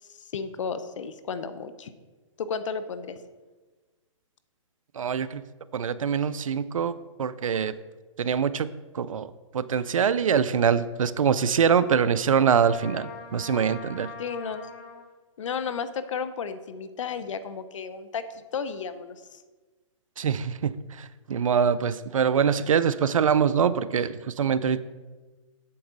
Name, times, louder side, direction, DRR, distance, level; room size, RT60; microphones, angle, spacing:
voice 1, 0.1-1.9 2.4-3.2 14.2-14.7 15.4-19.4, left 6 dB, 70° left, 12 dB, 0.8 m, -33 dB
voice 2, 5.0-5.4 5.7-7.8 8.2-8.7 8.9-14.1 20.2-24.8, right 7 dB, 90° right, 16 dB, 0.5 m, -24 dB
Trumpet, 12.5-15.1, left 5 dB, 40° left, 1.2 m, -42 dB
8.5 x 7.0 x 3.9 m, 1.3 s
hypercardioid pair, 140°, 17 cm